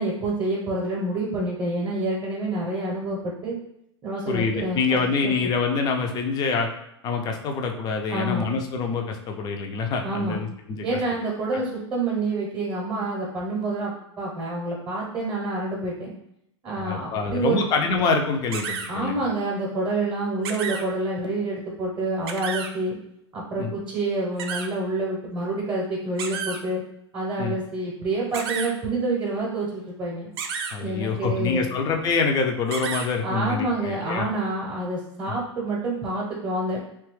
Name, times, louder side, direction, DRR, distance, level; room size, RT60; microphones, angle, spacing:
voice 1, 0.0-3.5 4.0-5.0 5.2-5.5 8.1-8.5 10.0-10.4 10.8-16.1 16.6-17.6 18.9-23.0 23.3-26.8 27.1-30.3 30.8-31.7 33.2-36.8, right 2 dB, 25° right, -4 dB, 0.8 m, -28 dB
voice 2, 4.3-6.7 7.0-10.8 16.8-19.1 23.6-23.7 27.4-27.5 30.7-34.3, left 4 dB, 25° left, 4 dB, 0.4 m, -25 dB
sound 1, 18.5-18.9 20.4-20.8 22.3-22.7 24.4-24.7 26.2-26.6 28.3-28.7 30.4-30.7 32.7-33.1, right 6 dB, 55° right, 0.4 m, -30 dB
2.9 x 2.3 x 3.1 m, 0.80 s
hypercardioid pair, 100°, 15 cm